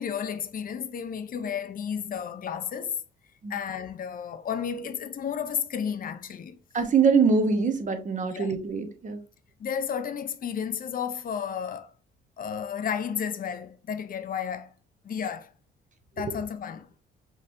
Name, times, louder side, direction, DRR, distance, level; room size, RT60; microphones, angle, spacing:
voice 1, 0.0-3.0 3.5-6.6 8.3-8.5 9.6-11.9 12.4-14.7 15.0-15.5 16.2-16.9, left 7 dB, 45° left, 0.6 m, -32 dB
voice 2, 6.7-9.2, right 5 dB, 40° right, 1.0 m, -23 dB
5.2 x 3.1 x 2.6 m
cardioid pair, 90°, 20 cm